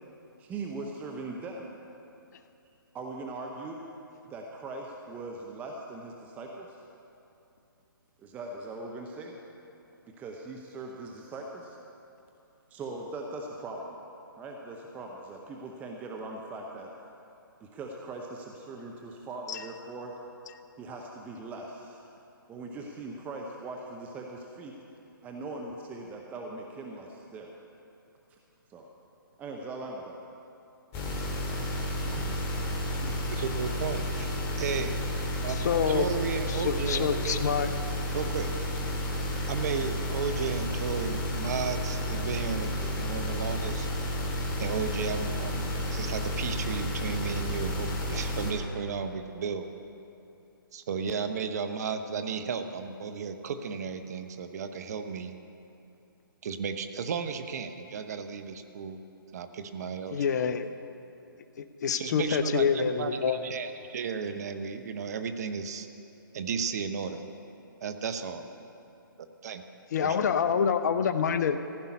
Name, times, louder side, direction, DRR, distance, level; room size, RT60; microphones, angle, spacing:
voice 1, 0.4-1.7 2.9-3.8 4.3-6.8 8.2-9.4 10.2-11.8 12.7-14.0 14.4-16.9 17.6-20.1 20.8-22.0 22.5-24.7 25.2-27.5 28.7-28.9 29.4-30.2, right 3 dB, 15° right, 0 dB, 0.8 m, -40 dB
sound 1, 30.9-48.5, equal, 20° left, 2.0 m, -31 dB
voice 2, 33.0-34.3 34.6-35.1 35.4-37.4 38.1-38.5 39.5-43.9 44.6-49.7 50.7-55.3 56.4-59.0 59.3-60.5 62.0-65.9 66.3-67.2 67.8-68.4 69.2-69.6 70.0-70.3, right 6 dB, 45° right, 9 dB, 0.8 m, -34 dB
voice 3, 35.5-36.1 36.5-37.7 60.1-60.7 61.6-63.4 69.9-71.6, left 7 dB, 50° left, 11 dB, 0.7 m, -27 dB
15.0 x 5.6 x 9.6 m, 2.8 s
figure-of-eight pair, 140°, 12 cm